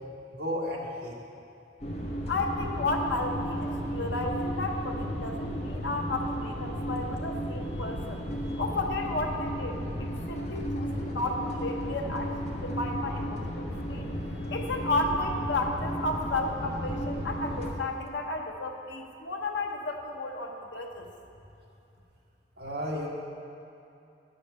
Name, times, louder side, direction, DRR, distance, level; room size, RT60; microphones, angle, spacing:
voice 1, 0.3-1.1 22.6-23.1, equal, 60° right, -3 dB, 1.5 m, -33 dB
sound 1, 1.8-17.7, equal, 35° left, 1.1 m, -34 dB
voice 2, 2.3-14.1 14.5-21.1, left 2 dB, 80° left, 2 dB, 1.0 m, -33 dB
10.5 x 5.1 x 6.8 m, 2.8 s
head